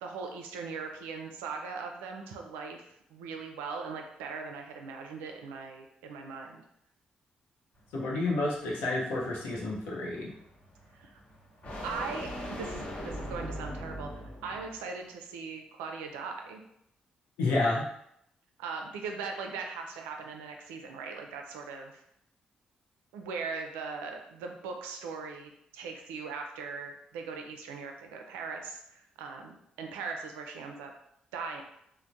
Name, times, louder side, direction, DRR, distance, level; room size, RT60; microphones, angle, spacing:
voice 1, 0.0-6.6 10.9-11.2 11.8-16.6 18.6-22.0 23.1-30.9 31.3-31.6, right 5 dB, 90° right, 3 dB, 0.3 m, -40 dB
sound 1, 7.8-14.8, equal, 50° left, 0.9 m, -41 dB
voice 2, 7.9-10.3 17.4-17.8, left 2 dB, 85° left, -3 dB, 0.6 m, -30 dB
3.2 x 2.0 x 2.6 m, 0.76 s
hypercardioid pair, 45°, 3 cm